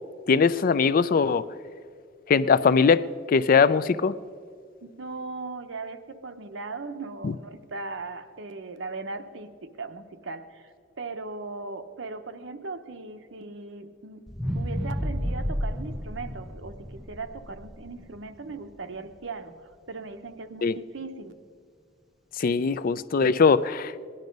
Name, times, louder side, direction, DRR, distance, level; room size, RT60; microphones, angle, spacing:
voice 1, 0.3-1.5 2.3-3.0 3.3-4.2 7.2-7.3 20.6-20.7 22.4-23.9, left 5 dB, 50° left, 16 dB, 0.4 m, -21 dB
voice 2, 4.8-14.2 14.5-21.4, right 3 dB, 75° right, 7 dB, 0.9 m, -38 dB
sound 1, 14.3-18.5 19.0-19.1, equal, ahead, 0.7 m, -31 dB
17.5 x 11.0 x 5.3 m, 2.1 s
head